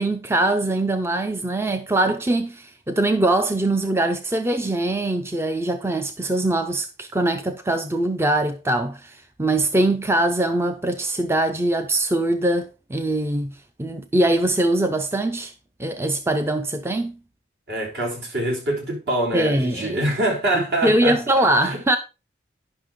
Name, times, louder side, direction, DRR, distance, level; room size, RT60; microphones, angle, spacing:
voice 1, 0.0-15.5 15.8-17.2 19.3-20.0 20.5-22.0, right 1 dB, 15° right, 0.5 m, -22 dB
voice 2, 17.7-21.8, right 1 dB, 70° right, 3.8 m, -25 dB
10.5 x 5.8 x 3.6 m
head